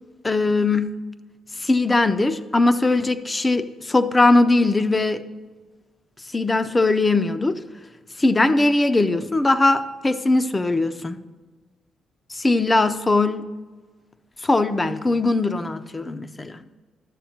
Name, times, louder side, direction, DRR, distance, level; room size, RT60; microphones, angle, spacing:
voice 1, 0.2-1.0 1.6-5.3 6.3-7.6 8.2-11.2 12.3-13.4 14.4-16.6, left 2 dB, 20° left, 11 dB, 0.5 m, -20 dB
12.5 x 6.8 x 2.8 m, 1.4 s
cardioid pair, 90°, 0 cm